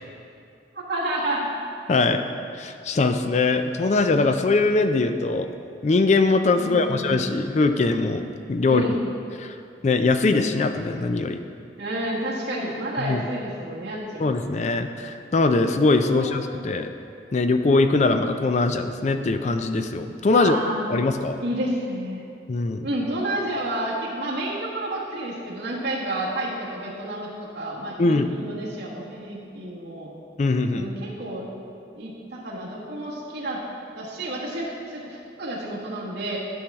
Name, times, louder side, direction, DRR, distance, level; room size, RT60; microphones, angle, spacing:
voice 1, 0.7-1.5 3.8-4.0 6.6-7.2 8.6-9.0 11.8-14.3 16.0-16.3 20.3-20.9 21.4-22.2 22.8-30.1 30.7-31.5 31.9-33.6 33.9-36.4, right 1 dB, 65° right, -6 dB, 1.4 m, -30 dB
voice 2, 1.9-2.2 2.6-5.5 5.8-8.8 9.4-9.5 9.8-11.4 13.0-13.2 14.2-16.9 17.3-20.6 20.9-21.4 22.5-22.9 28.0-28.3 30.4-30.9, left 3 dB, 40° left, 8 dB, 0.4 m, -21 dB
11.5 x 5.5 x 3.5 m, 2.5 s
head